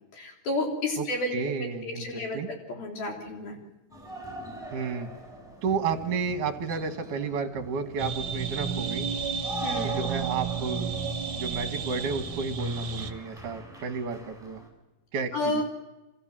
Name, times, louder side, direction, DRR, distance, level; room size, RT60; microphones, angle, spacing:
voice 1, 0.1-3.6 4.4-4.6 9.6-10.0 15.3-15.6, left 2 dB, 70° left, 1 dB, 5.5 m, -31 dB
voice 2, 1.3-2.5 4.7-5.1 5.6-9.1 9.8-10.9 11.3-14.6 15.1-15.6, right 5 dB, 60° right, 7 dB, 3.0 m, -31 dB
sound 1, 3.9-14.7, equal, ahead, 7.2 m, -43 dB
sound 2, 8.0-13.1, right 5 dB, 45° right, 1.8 m, -32 dB
29.0 x 26.5 x 7.6 m, 1.0 s
omnidirectional pair, 4.4 m